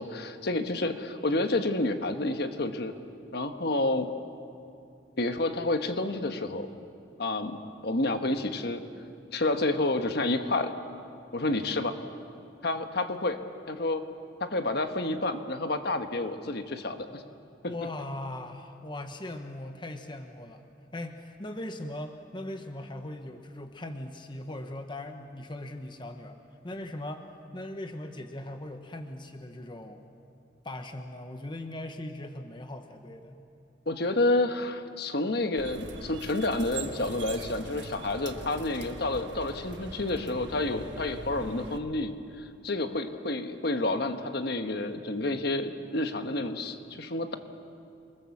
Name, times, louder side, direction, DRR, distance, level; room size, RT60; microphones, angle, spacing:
voice 1, 0.0-2.9 3.3-4.1 5.2-6.7 7.2-7.6 7.8-8.8 9.3-10.7 11.3-12.0 12.6-13.4 13.7-14.0 14.4-17.2 17.6-17.7 33.9-47.4, left 2 dB, 60° left, 7 dB, 1.3 m, -29 dB
voice 2, 17.6-26.4 26.6-30.0 30.6-33.4, left 1 dB, 25° left, 6 dB, 1.1 m, -39 dB
sound 1, 35.6-41.8, right 3 dB, 85° right, 1.5 m, -42 dB
28.5 x 20.0 x 7.2 m, 2.6 s
head